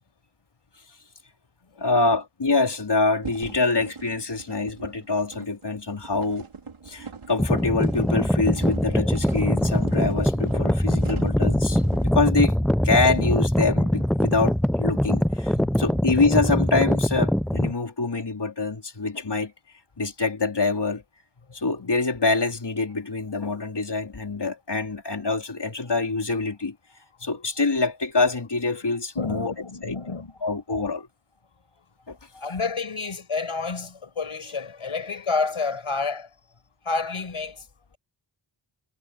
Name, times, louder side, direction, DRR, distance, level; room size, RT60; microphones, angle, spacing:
voice 1, 1.8-6.5 6.9-11.8 12.2-12.5 12.8-19.5 20.0-21.0 21.5-26.8 27.2-29.5 29.8-30.0 30.4-31.1 32.1-32.2, left 3 dB, 55° left, 3.7 m, -25 dB
sound 1, 3.2-12.2, right 5 dB, 80° right, 3.1 m, -41 dB
sound 2, 7.4-17.7, equal, ahead, 0.4 m, -23 dB
voice 2, 15.6-16.0 27.2-27.3 29.2-30.4 32.3-36.3 36.8-37.7, left 4 dB, 90° left, 5.5 m, -30 dB
wide cardioid pair, 75°, 48 cm